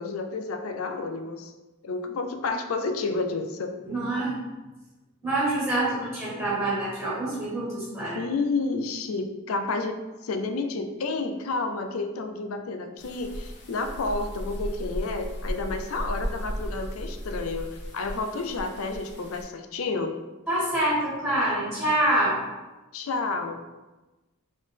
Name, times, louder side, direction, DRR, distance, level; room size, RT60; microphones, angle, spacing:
voice 1, 0.0-1.5 1.8-3.8 8.0-20.2 22.9-23.6, left 3 dB, 85° left, 7 dB, 0.5 m, -30 dB
voice 2, 3.8-4.3 5.2-8.2 20.5-22.4, right 1 dB, ahead, -9 dB, 1.5 m, -26 dB
sound 1, 13.0-19.4, equal, 60° left, 1.0 m, -35 dB
4.1 x 3.3 x 3.6 m, 1.1 s
head